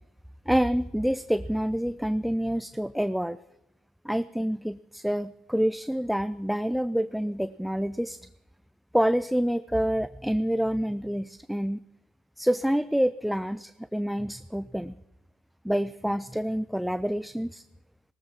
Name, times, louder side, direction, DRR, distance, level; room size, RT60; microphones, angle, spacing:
voice 1, 0.5-3.4 4.0-8.2 8.9-11.8 12.4-15.0 15.6-17.6, equal, ahead, 15 dB, 0.5 m, -27 dB
18.0 x 13.5 x 5.9 m, 0.85 s
hypercardioid pair, 55°, 2 cm